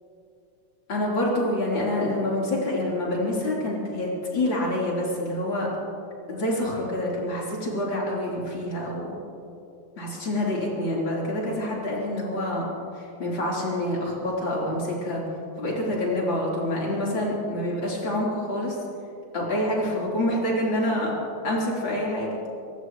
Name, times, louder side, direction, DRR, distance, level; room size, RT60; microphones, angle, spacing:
voice 1, 0.9-5.7 6.3-9.2 10.0-12.7 13.0-15.2 15.6-18.8 19.3-21.1 21.4-22.4, left 1 dB, 60° left, -5 dB, 4.7 m, -27 dB
24.5 x 17.5 x 3.2 m, 2.7 s
omnidirectional pair, 2.4 m